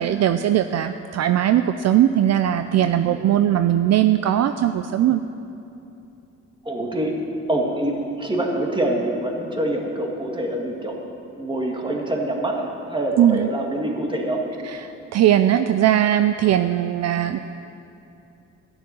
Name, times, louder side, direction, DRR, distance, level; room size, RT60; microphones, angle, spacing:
voice 1, 0.0-5.2 13.2-13.5 15.1-17.4, right 11 dB, 60° right, 9 dB, 0.5 m, -19 dB
voice 2, 6.6-7.2 7.5-10.9 11.4-14.4, right 1 dB, 15° right, 0 dB, 2.1 m, -25 dB
12.0 x 7.1 x 9.5 m, 2.8 s
cardioid pair, 90°, 30 cm